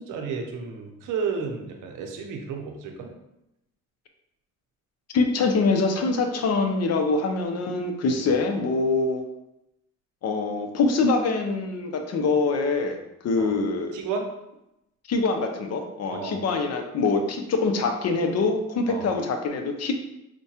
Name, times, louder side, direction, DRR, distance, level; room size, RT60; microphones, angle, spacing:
voice 1, 0.0-3.1 8.1-8.3 13.4-13.5 13.9-14.3 16.1-16.4 18.9-19.1, right 5 dB, 85° right, 3 dB, 0.6 m, -32 dB
voice 2, 5.1-9.2 10.2-13.0 13.2-13.9 15.1-19.9, left 3 dB, 55° left, 5 dB, 0.6 m, -24 dB
4.6 x 2.2 x 2.8 m, 0.87 s
cardioid pair, 90°, 30 cm